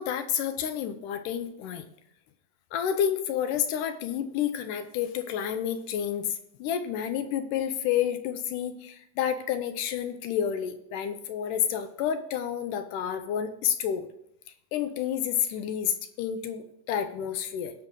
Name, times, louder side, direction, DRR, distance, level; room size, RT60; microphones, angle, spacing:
voice 1, 0.0-1.9 2.7-14.1 14.7-17.7, left 9 dB, 80° left, 9 dB, 2.2 m, -30 dB
16.5 x 6.2 x 3.7 m, 0.74 s
omnidirectional pair, 3.8 m